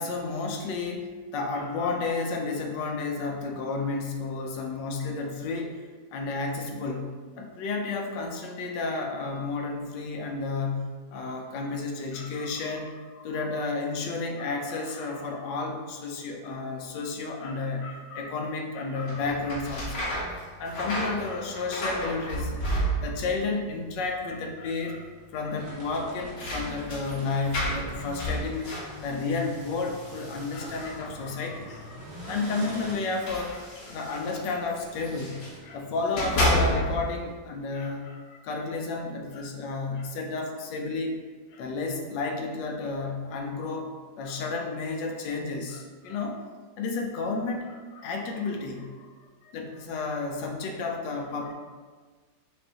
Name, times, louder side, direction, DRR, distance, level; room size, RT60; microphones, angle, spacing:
voice 1, 0.0-5.8 6.1-20.1 20.6-25.1 25.3-28.7 29.0-41.2 41.5-46.4 46.8-49.1 49.4-51.5, left 3 dB, 75° left, 2 dB, 1.2 m, -32 dB
sound 1, 19.0-23.4 23.6-24.3 24.6-24.7 25.8-31.2 32.1-35.6 36.0-37.2, equal, 55° left, 0.7 m, -32 dB
sound 2, 25.5-33.0, equal, 75° right, 1.7 m, -44 dB
5.1 x 2.5 x 2.8 m, 1.4 s
omnidirectional pair, 2.0 m